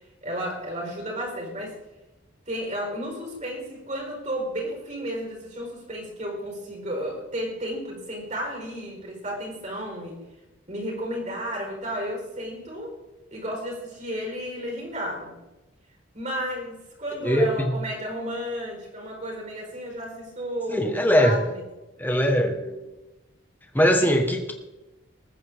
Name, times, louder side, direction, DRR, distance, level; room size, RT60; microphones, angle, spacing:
voice 1, 0.2-1.8 2.5-10.2 10.7-13.0 13.3-15.4 16.1-21.6 23.7-24.1, equal, 35° right, 0 dB, 4.8 m, -33 dB
voice 2, 17.2-17.7 20.7-21.4 22.0-22.8 23.7-24.5, equal, 10° left, 3 dB, 1.6 m, -21 dB
20.5 x 9.4 x 3.8 m, 1.0 s
head